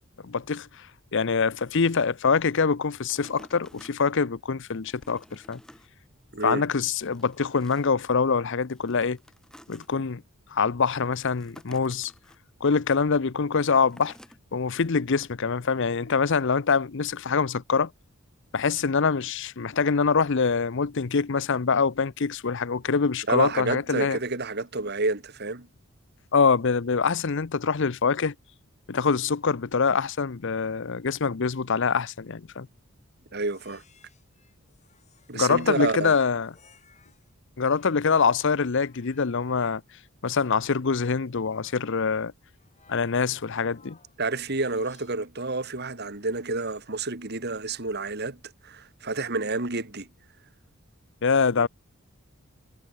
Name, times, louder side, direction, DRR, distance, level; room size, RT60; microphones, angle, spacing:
voice 1, 0.2-0.7 1.1-5.6 6.4-9.2 9.7-10.2 10.5-12.1 12.6-14.1 14.5-17.9 18.5-24.2 26.3-28.3 28.9-32.7 35.3-36.5 37.6-39.8 40.2-42.3 42.9-44.0 51.2-51.7, left 5 dB, 60° left, 0.7 m, -24 dB
sound 1, 3.1-4.3 4.8-5.9 6.3-6.4 6.8-8.0 8.7-9.9 11.1-12.4 13.8-14.4 15.0-15.1, equal, 5° left, 3.2 m, -52 dB
voice 2, 23.3-25.7 33.3-33.8 35.3-36.2 44.2-50.1 51.6-51.7, right 3 dB, 50° right, 2.4 m, -29 dB
sound 2, 33.5-37.3 37.7-45.3 46.4-47.0, left 5 dB, 35° left, 7.8 m, -60 dB
head